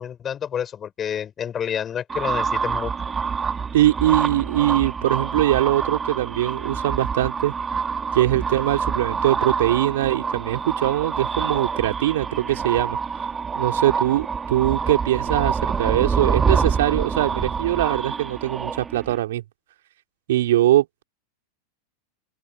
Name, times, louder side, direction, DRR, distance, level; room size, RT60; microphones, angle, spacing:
voice 1, 0.0-2.9, left 9 dB, 25° left, 6.6 m, -29 dB
sound 1, 2.1-19.2, right 5 dB, 15° right, 3.2 m, -26 dB
voice 2, 3.7-7.5 8.1-13.0 13.6-19.4 20.3-21.0, right 14 dB, 55° right, 4.4 m, -22 dB
open air
figure-of-eight pair, 90°, 0 cm